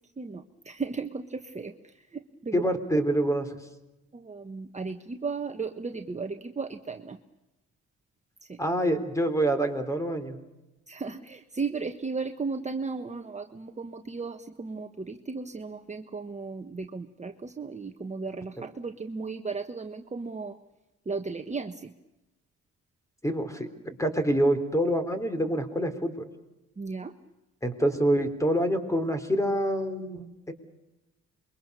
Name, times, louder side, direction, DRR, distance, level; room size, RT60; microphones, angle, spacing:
voice 1, 0.2-1.2 1.5-1.7 4.3-7.2 10.9-20.5 21.1-21.7 26.8-27.1, right 4 dB, 25° right, 5 dB, 1.3 m, -35 dB
voice 2, 2.5-3.5 8.6-10.4 23.2-26.3 27.6-30.5, right 1 dB, 10° left, 9 dB, 3.9 m, -26 dB
27.5 x 23.0 x 6.9 m, 1.0 s
cardioid pair, 90°, 30 cm